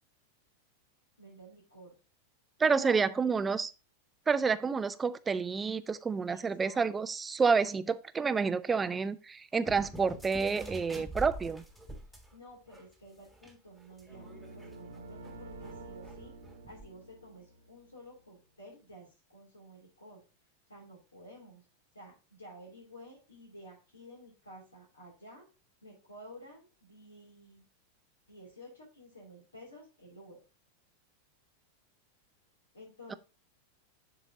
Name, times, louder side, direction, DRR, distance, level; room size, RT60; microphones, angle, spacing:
voice 1, 1.2-2.0 2.8-3.3 6.3-6.8 12.3-16.3 16.7-20.2 20.7-21.6 21.9-25.5 25.8-27.6 28.3-30.4 32.7-33.2, equal, 75° left, 2.7 m, -52 dB
voice 2, 2.6-3.7 4.3-11.6 33.1-33.2, right 5 dB, 15° right, 0.4 m, -29 dB
sound 1, 9.6-12.3 12.7-12.8 13.3-16.8, right 1 dB, ahead, 1.5 m, -46 dB
sound 2, 14.1-18.1, right 2 dB, 70° right, 1.1 m, -49 dB
11.5 x 4.0 x 2.6 m
figure-of-eight pair, 90°, 0 cm